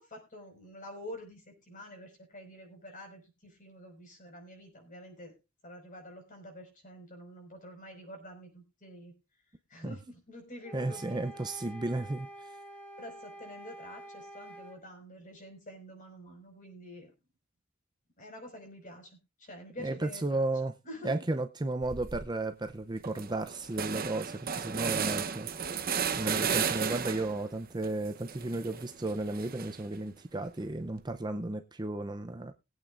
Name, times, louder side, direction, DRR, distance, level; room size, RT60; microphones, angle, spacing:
voice 1, 0.0-5.3 5.6-9.1 9.7-11.2 13.0-17.1 18.2-20.5 20.8-21.1, equal, 40° left, 5.2 m, -48 dB
sound 1, 10.6-14.8, right 1 dB, 10° left, 2.0 m, -48 dB
voice 2, 10.7-12.3 19.8-20.7 21.0-25.5 26.2-32.5, right 2 dB, 20° right, 0.6 m, -34 dB
sound 2, 21.8-22.3 22.7-22.8 23.0-27.5 27.8-30.0, right 6 dB, 45° right, 0.9 m, -34 dB
21.5 x 8.6 x 2.5 m
head